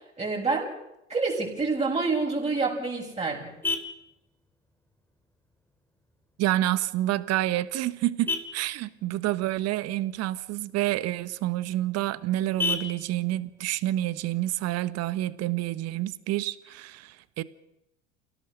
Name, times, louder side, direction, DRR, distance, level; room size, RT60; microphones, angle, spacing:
voice 1, 0.2-0.7 1.1-3.5, right 4 dB, 20° right, 7.3 m, -27 dB
Vehicle horn car horn honking, 2.4-15.4, left 3 dB, 5° left, 2.9 m, -39 dB
voice 2, 6.4-17.4, right 15 dB, 45° right, 1.3 m, -28 dB
28.0 x 18.0 x 6.7 m
hypercardioid pair, 75°, 35 cm